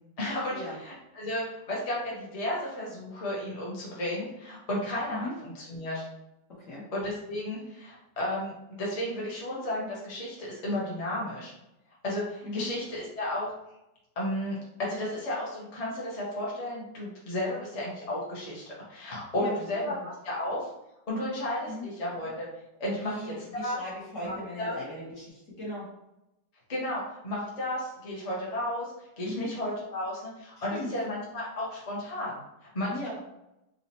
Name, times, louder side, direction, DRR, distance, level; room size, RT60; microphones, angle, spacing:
voice 1, 0.2-6.0 6.9-11.5 12.0-13.5 14.2-18.6 18.9-20.7 21.1-22.5 22.8-23.8 24.2-24.3 24.6-24.7 26.7-28.9 29.2-33.1, left 1 dB, 30° left, -5 dB, 0.7 m, -33 dB
voice 2, 19.3-20.1 21.6-21.9 22.8-25.9 29.2-29.5 30.6-30.9 32.9-33.1, left 1 dB, 50° left, -5 dB, 1.1 m, -38 dB
4.0 x 2.8 x 2.8 m, 0.90 s
omnidirectional pair, 2.1 m